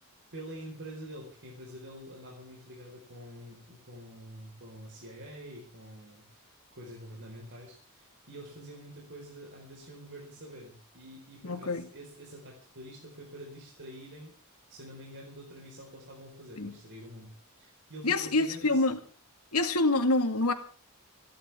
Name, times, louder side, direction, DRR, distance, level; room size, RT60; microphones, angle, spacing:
voice 1, 0.3-14.3 14.7-18.8, equal, 55° right, 5.2 m, -47 dB
voice 2, 11.4-11.9 16.6-16.7 18.0-19.0 19.5-20.5, left 2 dB, 80° left, 2.2 m, -26 dB
29.0 x 11.5 x 3.8 m
head